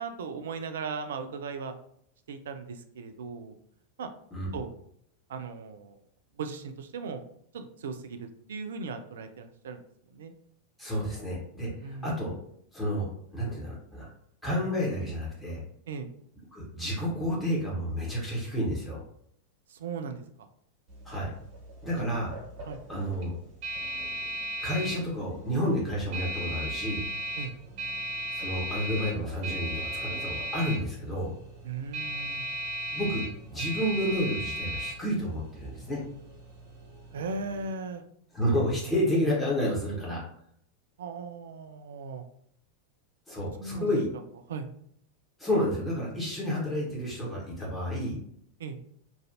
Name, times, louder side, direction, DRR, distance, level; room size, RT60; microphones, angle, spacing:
voice 1, 0.0-1.7 2.3-3.5 4.0-4.1 4.5-4.7 5.3-5.9 6.4-7.2 7.5-9.8 10.1-10.3 11.8-12.1 15.9-16.1 19.7-20.2 22.7-22.8 27.4-27.5 31.6-32.4 37.1-38.0 41.0-42.3 43.6-43.9 44.5-44.7 48.6-48.8, right 4 dB, 60° right, 8 dB, 0.3 m, -37 dB
voice 2, 10.8-12.4 12.7-14.1 14.4-15.6 16.5-19.0 21.0-21.3 21.8-22.3 22.9-23.3 24.6-27.0 28.3-31.3 32.9-33.2 33.5-36.0 38.3-40.2 43.3-44.1 45.4-48.2, equal, 10° left, -5 dB, 1.2 m, -30 dB
sound 1, 20.9-37.7, right 2 dB, 45° right, 1.5 m, -37 dB
3.1 x 2.5 x 2.6 m, 0.68 s
figure-of-eight pair, 90°, 0 cm